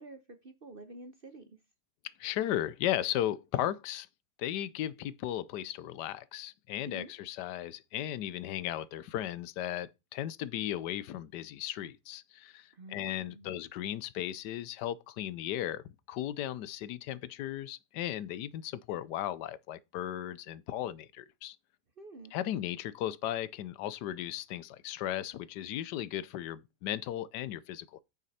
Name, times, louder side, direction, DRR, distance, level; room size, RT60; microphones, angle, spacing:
voice 1, 0.0-1.5 6.8-7.1 12.7-13.5 22.0-22.3, right 2 dB, 40° right, 0.9 m, -48 dB
voice 2, 2.2-4.1 4.4-21.6 22.3-28.0, left 12 dB, 80° left, 1.2 m, -36 dB
8.9 x 6.5 x 4.1 m
omnidirectional pair, 1.8 m